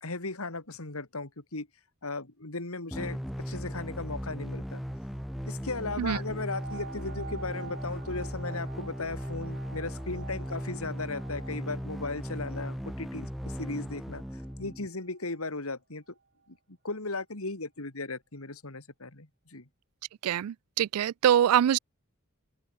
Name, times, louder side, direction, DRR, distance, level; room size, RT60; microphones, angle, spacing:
voice 1, 0.0-1.7 2.0-3.2 3.5-4.8 5.5-13.3 13.6-14.2 14.6-16.0 16.5-16.6 16.8-19.6, left 3 dB, 75° left, 2.8 m, -36 dB
sound 1, 2.9-14.9, equal, ahead, 2.5 m, -37 dB
sound 2, 6.2-15.4 16.1-16.2, right 4 dB, 50° right, 7.7 m, -49 dB
voice 2, 20.2-21.8, right 10 dB, 85° right, 0.3 m, -24 dB
open air
head